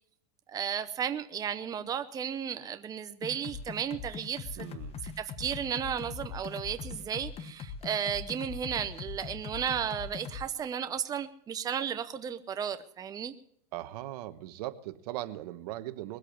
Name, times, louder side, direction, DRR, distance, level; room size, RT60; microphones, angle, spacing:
voice 1, 0.5-4.7 5.0-13.3, right 8 dB, 15° right, 9 dB, 0.7 m, -34 dB
sound 1, 3.2-10.5, left 6 dB, 30° left, 1.2 m, -41 dB
voice 2, 4.6-5.0 13.7-16.2, right 15 dB, 70° right, 13 dB, 1.2 m, -39 dB
21.0 x 8.3 x 8.0 m, 0.67 s
supercardioid pair, 140°, 21 cm